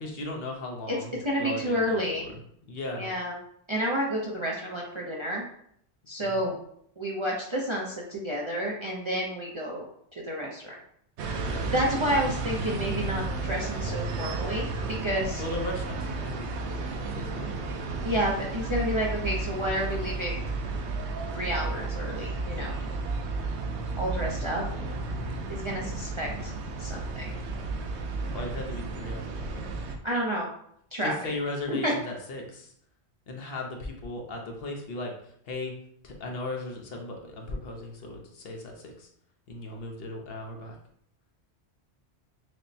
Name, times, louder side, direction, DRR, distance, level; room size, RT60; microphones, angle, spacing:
voice 1, 0.0-2.3 2.7-3.1 6.2-6.5 11.4-11.7 15.4-17.5 24.3-25.5 28.3-29.8 31.0-32.7 33.3-35.1 35.5-35.7 36.0-39.1 39.5-40.8, left 2 dB, 65° left, 2 dB, 0.9 m, -37 dB
voice 2, 1.2-2.3 3.0-3.4 3.7-5.4 6.1-6.5 7.0-9.8 10.2-10.8 11.6-14.7 15.0-15.4 18.0-20.4 21.3-22.7 24.0-24.6 25.5-26.5 26.8-27.3 30.0-30.5 30.9-31.3 31.7-31.9, equal, 35° right, -3 dB, 0.5 m, -30 dB
sound 1, 11.2-30.0, right 3 dB, 80° right, 0.9 m, -33 dB
6.1 x 2.1 x 2.7 m, 0.68 s
omnidirectional pair, 1.1 m